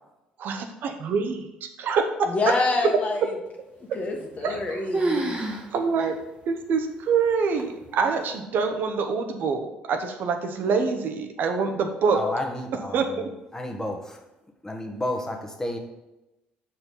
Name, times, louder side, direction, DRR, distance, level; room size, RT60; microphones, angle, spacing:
voice 1, 0.4-2.5 2.8-2.9 4.4-4.8 5.7-6.2 6.5-12.2 12.9-13.3, right 5 dB, 65° right, 6 dB, 0.9 m, -25 dB
voice 2, 2.3-3.3 3.9-5.5, left 3 dB, 45° left, 2 dB, 1.6 m, -27 dB
sound 1, 4.2-4.7 4.9-5.7 6.0-6.1 6.8-6.9 7.6-8.0, right 2 dB, 30° right, 1.5 m, -28 dB
voice 3, 12.1-13.2 13.5-14.2 14.6-15.8, left 1 dB, 15° left, 3 dB, 1.4 m, -31 dB
6.6 x 4.6 x 5.5 m, 0.98 s
supercardioid pair, 80°, 4 cm